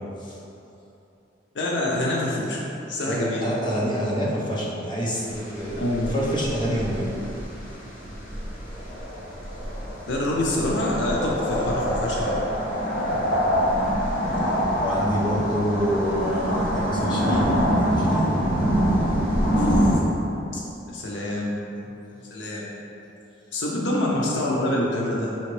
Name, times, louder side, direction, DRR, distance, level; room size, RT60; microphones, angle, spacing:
voice 1, 1.5-3.4 5.8-6.1 10.1-12.2 19.6-19.8 20.5-20.6 20.9-21.6 22.3-22.6 23.5-25.3, left 1 dB, 70° left, -3 dB, 0.5 m, -26 dB
voice 2, 3.1-5.8 6.1-7.1 14.8-18.3, equal, 25° left, -7 dB, 0.8 m, -27 dB
sound 1, 5.3-19.9, equal, 50° left, 1.0 m, -25 dB
5.5 x 2.9 x 3.1 m, 2.9 s
head